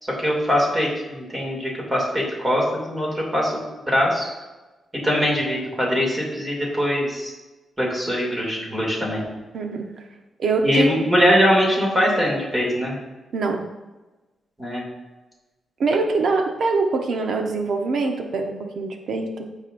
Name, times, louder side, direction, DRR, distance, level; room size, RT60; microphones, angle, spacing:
voice 1, 0.0-4.3 5.0-7.3 7.8-9.2 10.6-13.0 14.6-14.8, equal, 15° right, -3 dB, 2.7 m, -22 dB
voice 2, 9.5-9.9 10.4-11.0 13.3-13.6 15.8-19.5, right 3 dB, 65° right, 3 dB, 1.0 m, -23 dB
14.0 x 4.8 x 2.6 m, 1.1 s
cardioid pair, 120°, 0 cm